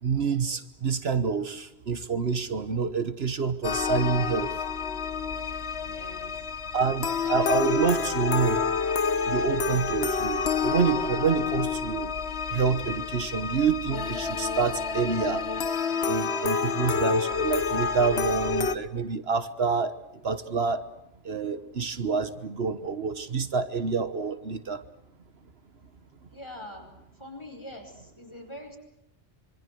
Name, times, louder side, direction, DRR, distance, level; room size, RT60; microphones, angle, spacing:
voice 1, 0.0-4.5 6.7-8.6 9.2-12.1 12.5-15.4 16.0-19.9 20.2-20.8 21.2-24.8, right 5 dB, 65° right, 11 dB, 1.4 m, -27 dB
sound 1, 3.6-18.8, left 5 dB, 75° left, 1.4 m, -28 dB
voice 2, 5.9-6.3 26.3-26.9 27.2-28.8, left 1 dB, 25° left, 3 dB, 5.3 m, -43 dB
26.0 x 24.0 x 7.8 m, 0.87 s
omnidirectional pair, 1.1 m